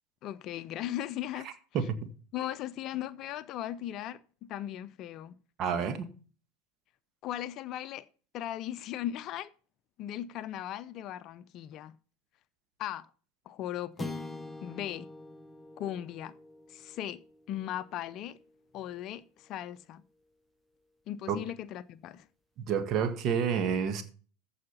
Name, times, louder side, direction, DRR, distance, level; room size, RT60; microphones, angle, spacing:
voice 1, 0.2-1.5 2.3-5.3 7.2-8.1 8.3-9.5 10.0-12.0 12.8-13.1 13.5-14.1 14.6-15.1 15.8-16.3 16.7-17.2 17.5-18.4 18.7-20.0 21.1-22.3, left 12 dB, 45° left, 0.6 m, -38 dB
voice 2, 1.7-2.1 5.6-6.1 21.3-21.4 22.6-24.0, right 7 dB, 45° right, 1.6 m, -29 dB
sound 1, 14.0-18.5, left 2 dB, ahead, 1.1 m, -45 dB
14.5 x 4.9 x 5.6 m
hypercardioid pair, 80°, 0 cm